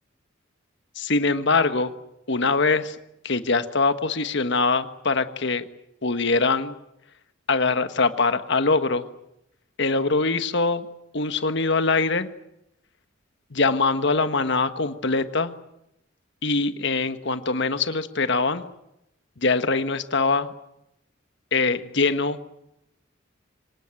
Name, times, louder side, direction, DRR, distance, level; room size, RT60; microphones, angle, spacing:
voice 1, 0.9-1.9 2.3-3.0 3.2-5.6 6.0-6.7 7.5-9.1 9.8-10.9 11.1-12.3 13.5-15.5 16.4-18.6 19.4-20.5 21.5-22.4, left 3 dB, 60° left, 10 dB, 1.4 m, -23 dB
25.5 x 19.0 x 9.1 m, 0.84 s
head